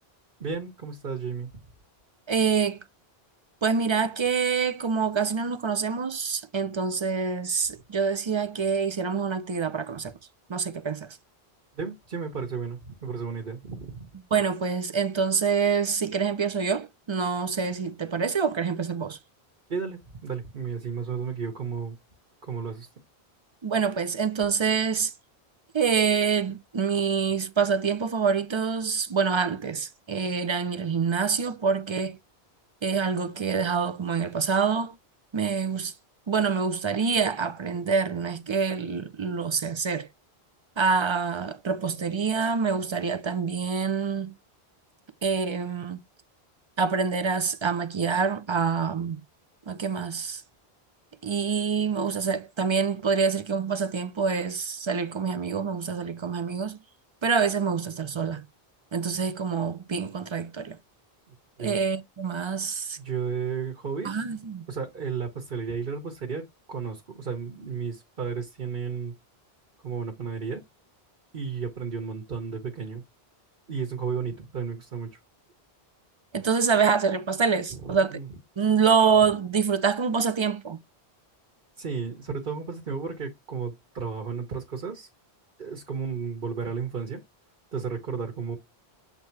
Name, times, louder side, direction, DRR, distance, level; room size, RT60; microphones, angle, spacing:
voice 1, 0.4-1.5 11.7-14.1 19.7-22.0 22.4-22.9 61.6-61.8 63.0-64.2 64.7-69.1 69.8-70.6 71.3-73.0 73.7-75.2 77.7-78.3 81.8-85.1 85.6-87.2 87.7-88.6, right 6 dB, 55° right, 1.4 m, -33 dB
voice 2, 2.3-2.8 3.6-10.1 10.5-11.2 14.3-19.2 23.6-25.1 25.7-32.2 32.8-35.0 35.3-35.9 36.3-40.1 40.8-44.3 45.2-46.0 46.8-49.2 49.7-50.4 51.2-56.8 57.2-58.4 58.9-60.8 61.6-63.0 64.0-64.7 76.3-78.2 78.6-80.8, right 5 dB, 40° right, 0.4 m, -26 dB
8.0 x 2.8 x 4.5 m
omnidirectional pair, 1.1 m